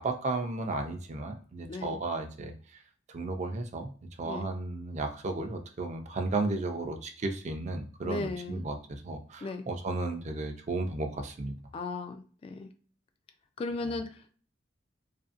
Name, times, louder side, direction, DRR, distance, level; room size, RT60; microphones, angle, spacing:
voice 1, 0.0-2.5 3.1-3.9 4.2-11.6, right 2 dB, 40° right, 5 dB, 0.4 m, -34 dB
voice 2, 8.0-8.6 9.4-9.7 11.7-12.7 13.6-14.3, left 3 dB, 30° left, 7 dB, 0.3 m, -36 dB
2.7 x 2.5 x 2.4 m, 0.42 s
head